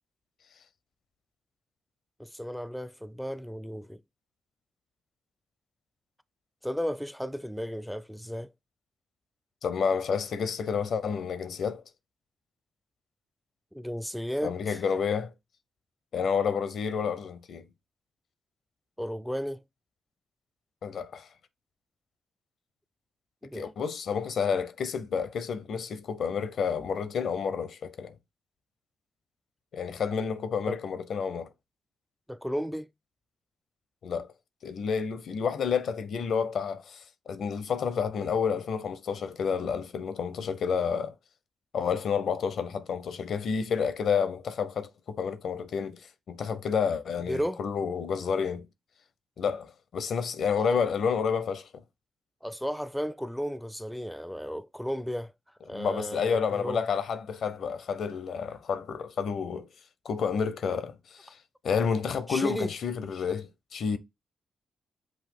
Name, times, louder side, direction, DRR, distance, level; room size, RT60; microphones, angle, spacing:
voice 1, 2.2-4.0 6.6-8.5 13.7-14.8 19.0-19.6 23.4-23.7 30.7-30.8 32.3-32.9 47.3-47.6 50.5-50.8 52.4-55.3 55.6-56.8 62.3-62.7, equal, ahead, 0.4 m, -34 dB
voice 2, 9.6-11.8 14.4-15.3 16.1-17.7 20.8-21.3 23.5-28.2 29.7-31.5 34.0-34.3 34.6-41.1 41.7-48.7 49.4-51.7 55.7-59.7 60.0-61.4 61.6-64.0, left 6 dB, 65° left, 0.6 m, -30 dB
6.1 x 2.4 x 3.6 m
hypercardioid pair, 40°, 0 cm